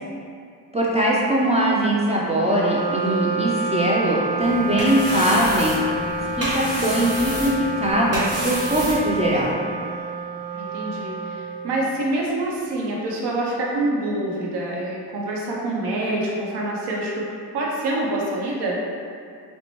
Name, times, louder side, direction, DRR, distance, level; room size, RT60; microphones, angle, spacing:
voice 1, 0.7-5.8 6.4-9.5, right 1 dB, 15° right, -5 dB, 0.4 m, -21 dB
Wind instrument woodwind instrument, 2.4-12.0, right 1 dB, 20° left, 0.6 m, -29 dB
sound 1, 4.4-9.5, right 1 dB, 35° right, 1.0 m, -30 dB
voice 2, 10.5-17.3 17.5-18.8, right 1 dB, 70° right, -3 dB, 0.8 m, -26 dB
4.0 x 2.2 x 2.9 m, 2.3 s
cardioid pair, 90°, 41 cm